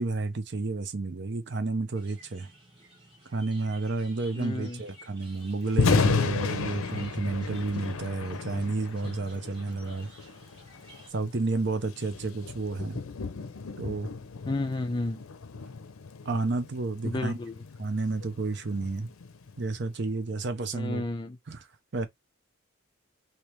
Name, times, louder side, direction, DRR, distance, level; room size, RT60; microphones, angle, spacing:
voice 1, 0.0-2.5 3.3-10.1 11.1-13.0 13.8-14.1 16.3-17.4 17.8-19.1 19.6-21.1 21.5-21.7 21.9-22.1, right 3 dB, 55° right, 0.6 m, -31 dB
sound 1, 1.9-11.1, right 1 dB, 25° right, 1.4 m, -54 dB
voice 2, 4.4-4.8 14.5-15.2 17.0-17.6 20.7-21.4, left 2 dB, 20° left, 0.4 m, -32 dB
Thunder, 5.6-19.8, left 4 dB, 85° left, 0.5 m, -33 dB
3.3 x 2.8 x 3.0 m
head